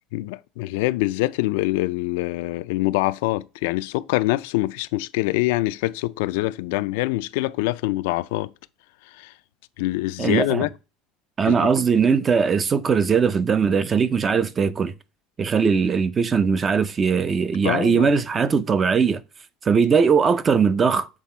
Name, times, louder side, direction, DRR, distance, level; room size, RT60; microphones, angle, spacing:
voice 1, 0.1-8.5 9.2-9.3 9.8-10.7 11.4-11.7 17.6-18.1, left 19 dB, 80° left, 0.3 m, -24 dB
voice 2, 10.2-10.7 11.4-14.9 15.4-19.2 19.7-21.1, right 6 dB, 25° right, 0.4 m, -20 dB
7.5 x 3.5 x 4.3 m
cardioid pair, 140°, 0 cm